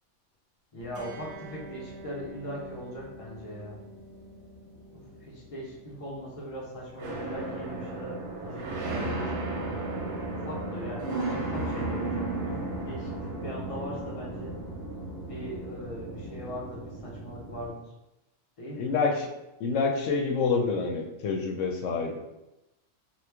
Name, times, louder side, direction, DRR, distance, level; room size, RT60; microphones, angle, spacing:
voice 1, 0.7-3.8 4.9-9.8 10.3-13.1 13.4-14.5 15.3-17.9 18.6-18.9, equal, 35° left, -4 dB, 0.8 m, -40 dB
sound 1, 0.8-17.7, right 2 dB, 65° right, 0.8 m, -36 dB
voice 2, 18.8-19.3 19.6-22.2, left 4 dB, 85° left, 2 dB, 0.9 m, -27 dB
3.0 x 2.2 x 3.4 m, 0.95 s
omnidirectional pair, 1.2 m